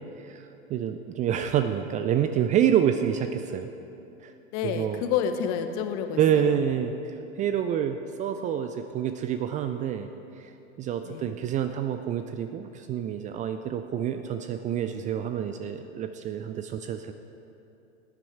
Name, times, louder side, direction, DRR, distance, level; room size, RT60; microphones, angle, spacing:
voice 1, 0.2-3.7 4.2-4.3 4.6-5.0 6.2-17.1, right 9 dB, 20° right, 8 dB, 0.4 m, -28 dB
voice 2, 4.5-6.6 11.0-11.3, left 8 dB, 40° left, 7 dB, 1.1 m, -29 dB
18.0 x 10.0 x 4.6 m, 2.8 s
figure-of-eight pair, 85°, 34 cm